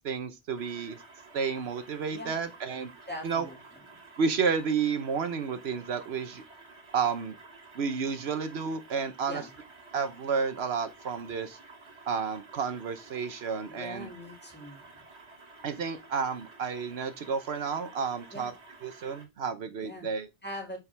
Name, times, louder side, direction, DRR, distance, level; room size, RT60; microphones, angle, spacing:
voice 1, 0.0-1.0 1.3-2.9 3.2-3.5 4.2-6.4 6.9-7.3 7.7-9.4 9.9-11.6 12.1-14.1 15.6-18.5 18.8-20.3, right 5 dB, 70° right, 1.0 m, -31 dB
sound 1, 0.5-19.3, right 3 dB, 90° right, 2.0 m, -52 dB
voice 2, 3.1-3.6 9.3-9.5 13.7-15.0 18.3-18.5 19.8-20.1 20.4-20.8, left 1 dB, 10° left, 2.0 m, -41 dB
7.1 x 5.2 x 3.3 m
omnidirectional pair, 1.1 m